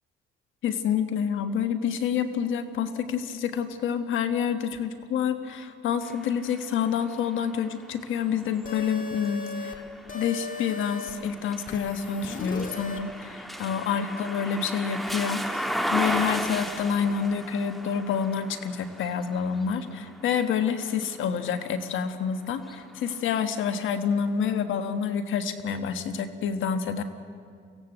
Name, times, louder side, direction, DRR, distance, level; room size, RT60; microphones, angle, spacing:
voice 1, 0.6-9.8 10.1-27.0, left 7 dB, 80° left, 9 dB, 1.5 m, -28 dB
sound 1, 6.0-22.0 22.5-23.7, equal, ahead, 1.5 m, -36 dB
sound 2, 8.6-9.8 10.1-11.1 11.7-13.0, left 3 dB, 40° left, 2.3 m, -36 dB
23.5 x 16.5 x 8.1 m, 2.2 s
cardioid pair, 90°, 20 cm